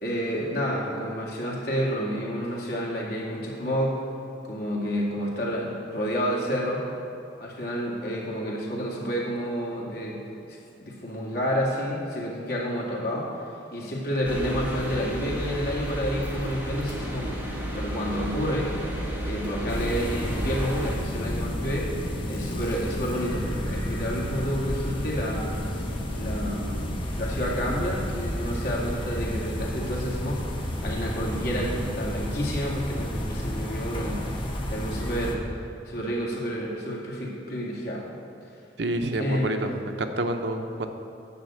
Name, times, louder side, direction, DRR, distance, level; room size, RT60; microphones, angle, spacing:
voice 1, 0.0-4.0 4.4-6.9 7.4-10.2 10.8-13.4 13.7-17.3 17.7-18.7 19.2-21.9 22.3-25.5 26.1-30.4 30.8-35.4 35.9-38.2 39.2-39.7 40.5-40.6, equal, 60° left, -3 dB, 2.2 m, -30 dB
sound 1, 14.2-21.0, right 1 dB, 10° right, 1.6 m, -32 dB
sound 2, 16.8-26.8, left 4 dB, 80° left, 1.4 m, -42 dB
sound 3, 19.7-35.3, equal, 30° left, 1.0 m, -31 dB
voice 2, 38.8-40.9, right 1 dB, 70° right, 6 dB, 0.8 m, -28 dB
9.6 x 5.8 x 7.6 m, 2.6 s
head